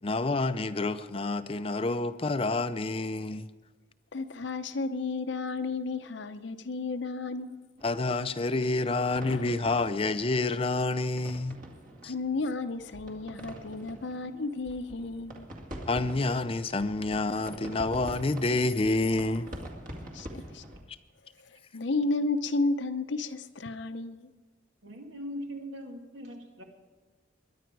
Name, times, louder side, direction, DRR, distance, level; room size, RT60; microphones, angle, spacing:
voice 1, 0.0-3.5 7.8-11.6 12.0-12.1 15.9-19.5, left 2 dB, 30° left, 0.5 m, -28 dB
voice 2, 4.1-7.6 9.2-9.6 12.0-15.5 20.1-20.6 21.4-24.3, left 3 dB, 70° left, 0.7 m, -32 dB
sound 1, 7.8-20.8, equal, 45° right, 2.1 m, -45 dB
voice 3, 24.8-26.6, equal, 80° right, 2.2 m, -40 dB
21.5 x 10.5 x 4.7 m
head